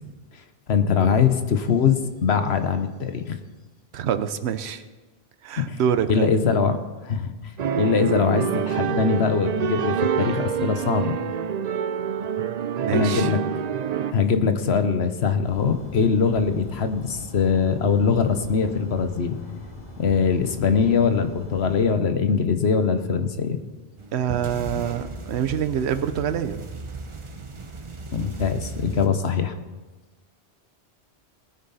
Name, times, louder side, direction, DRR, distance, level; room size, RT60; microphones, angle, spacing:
voice 1, 0.7-3.4 5.7-5.8 6.1-7.3 7.7-11.2 12.9-13.4 14.1-19.4 20.0-23.6 28.1-29.5, left 6 dB, 70° left, 9 dB, 1.2 m, -22 dB
voice 2, 3.9-4.8 5.4-6.3 12.8-13.3 24.1-26.6, right 8 dB, 75° right, 11 dB, 1.0 m, -26 dB
sound 1, 7.6-14.1, right 7 dB, 55° right, 0.5 m, -26 dB
sound 2, 15.4-21.8, left 1 dB, 55° left, 3.3 m, -41 dB
sound 3, 24.0-29.1, right 3 dB, 30° right, 0.8 m, -36 dB
19.5 x 9.5 x 4.1 m, 1.2 s
omnidirectional pair, 1.1 m